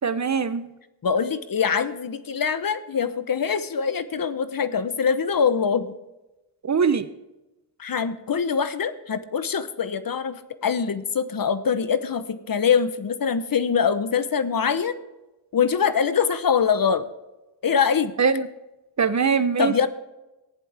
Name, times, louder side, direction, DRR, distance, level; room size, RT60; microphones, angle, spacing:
voice 1, 0.0-0.7 6.6-7.1 18.2-18.5 19.0-19.9, right 6 dB, 40° right, 13 dB, 0.8 m, -22 dB
voice 2, 1.0-5.9 7.8-15.0 15.5-17.1 17.6-18.1 19.6-19.9, left 6 dB, 50° left, 13 dB, 1.0 m, -23 dB
15.0 x 10.5 x 3.5 m, 1.0 s
cardioid pair, 75°, 44 cm